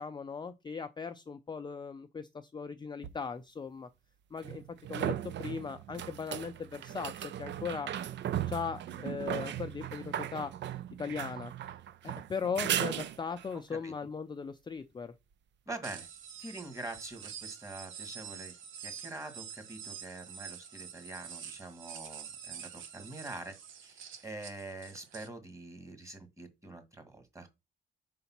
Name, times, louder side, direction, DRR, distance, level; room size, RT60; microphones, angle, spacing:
voice 1, 0.0-3.9 4.3-4.6 4.9-7.9 8.5-10.5 11.0-11.5 12.0-15.1, left 5 dB, 20° left, 0.4 m, -38 dB
sound 1, 3.0-3.1 4.4-13.6 17.0-17.1, right 11 dB, 65° right, 0.5 m, -37 dB
voice 2, 15.7-16.1 16.4-23.5 23.8-27.6, right 2 dB, 15° right, 1.8 m, -45 dB
sound 2, 15.8-25.3, right 8 dB, 80° right, 1.0 m, -47 dB
5.0 x 3.9 x 5.8 m
cardioid pair, 90°, 20 cm